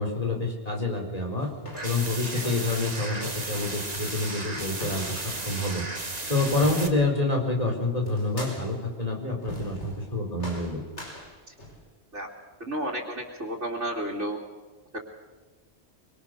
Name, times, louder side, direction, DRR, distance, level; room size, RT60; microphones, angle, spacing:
voice 1, 0.0-1.5 1.8-10.8, left 2 dB, 35° left, 1 dB, 4.9 m, -28 dB
sound 1, 1.4-7.4 8.1-8.9 9.4-10.1 10.4-11.9, equal, 75° left, 5.2 m, -41 dB
sound 2, 1.7-6.9, right 2 dB, 35° right, 2.3 m, -35 dB
voice 2, 12.7-14.4 14.9-15.0, right 1 dB, 90° right, -4 dB, 3.3 m, -32 dB
25.0 x 23.5 x 6.8 m, 1.3 s
omnidirectional pair, 1.2 m